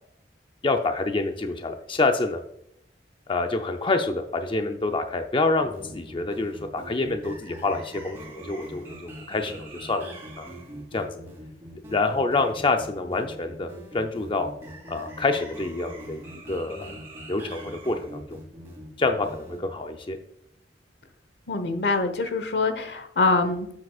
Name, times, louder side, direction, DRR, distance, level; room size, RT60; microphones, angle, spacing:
voice 1, 0.6-2.4 3.3-10.1 10.4-10.5 10.9-11.1 11.9-13.7 13.9-14.5 14.9-16.9 17.3-18.4 19.0-20.2, left 3 dB, 30° left, 5 dB, 0.6 m, -27 dB
sound 1, 5.5-19.6, right 1 dB, 15° right, 2.7 m, -42 dB
voice 2, 21.5-23.7, left 3 dB, 75° left, 8 dB, 1.1 m, -24 dB
9.5 x 7.6 x 2.4 m, 0.74 s
head